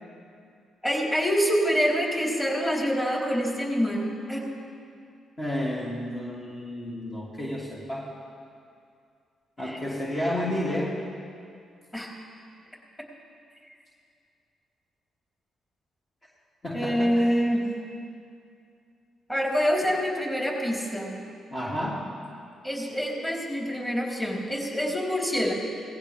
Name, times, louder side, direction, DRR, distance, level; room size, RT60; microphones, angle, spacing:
voice 1, 0.8-4.5 9.6-9.8 11.9-12.1 16.7-17.7 19.3-21.2 22.6-25.5, equal, 15° left, -3 dB, 3.9 m, -26 dB
voice 2, 5.4-8.2 9.6-11.0 16.6-17.4 21.5-22.0, left 1 dB, 40° left, -5 dB, 2.8 m, -31 dB
18.5 x 15.0 x 3.5 m, 2.4 s
hypercardioid pair, 50°, 0 cm